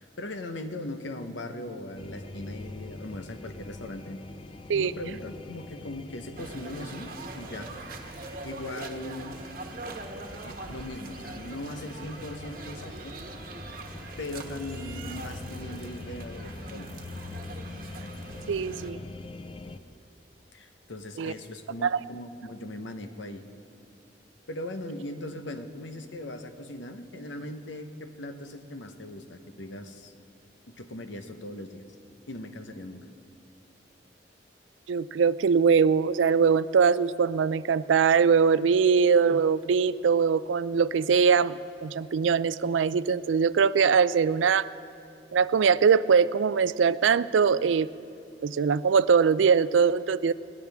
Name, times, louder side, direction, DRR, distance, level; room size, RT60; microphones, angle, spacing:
voice 1, 0.0-4.2 4.8-7.7 8.1-9.4 10.4-13.1 14.2-16.9 20.5-23.4 24.5-30.1 30.7-31.8 32.3-33.0, left 1 dB, 85° left, 7 dB, 1.0 m, -39 dB
sound 1, 1.9-19.8, left 2 dB, 30° left, 0.5 m, -44 dB
sound 2, 6.4-18.9, right 2 dB, 50° right, 1.1 m, -42 dB
voice 2, 18.5-19.0 21.2-21.3 21.8-22.0 34.9-44.7 45.3-47.9 48.4-50.3, right 6 dB, 90° right, 17 dB, 0.4 m, -22 dB
21.0 x 17.0 x 3.5 m, 2.6 s
head